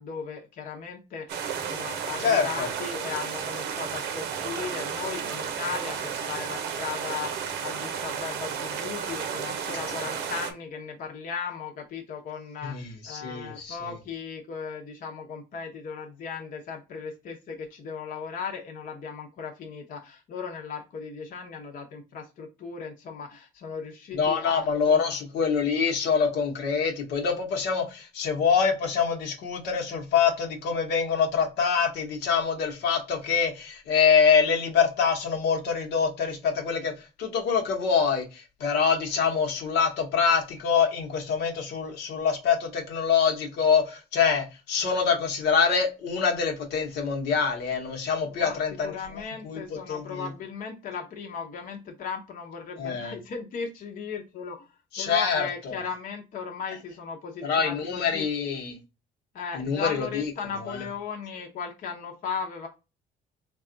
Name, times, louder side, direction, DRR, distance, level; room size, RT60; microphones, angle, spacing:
voice 1, 0.0-25.1 48.3-48.6 48.8-54.7 55.0-58.3 59.3-62.7, left 6 dB, 55° left, 0.8 m, -37 dB
sound 1, 1.3-10.5, right 7 dB, 85° right, 0.7 m, -33 dB
voice 2, 2.2-2.7 12.6-13.8 24.1-49.6 49.9-50.3 52.8-53.1 54.9-55.8 57.4-58.8 59.5-60.3 60.6-60.8, left 6 dB, 80° left, 1.1 m, -25 dB
3.4 x 2.4 x 3.8 m
cardioid pair, 110°, 17 cm